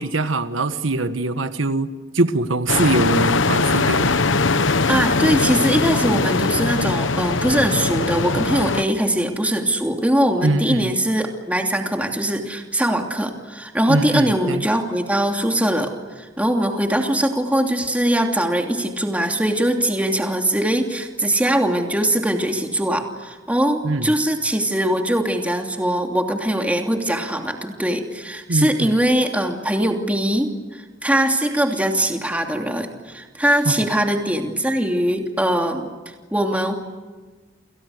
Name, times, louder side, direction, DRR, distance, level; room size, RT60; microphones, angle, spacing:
voice 1, 0.0-1.9 2.1-4.1 10.4-10.9 13.9-14.6 23.8-24.1 28.5-29.0 33.6-33.8, right 2 dB, 75° right, 10 dB, 1.4 m, -22 dB
sound 1, 2.7-8.8, left 3 dB, 70° left, 1.0 m, -20 dB
voice 2, 4.9-35.9 36.3-36.8, right 1 dB, 5° right, 3 dB, 2.8 m, -21 dB
29.5 x 28.0 x 6.6 m, 1.3 s
head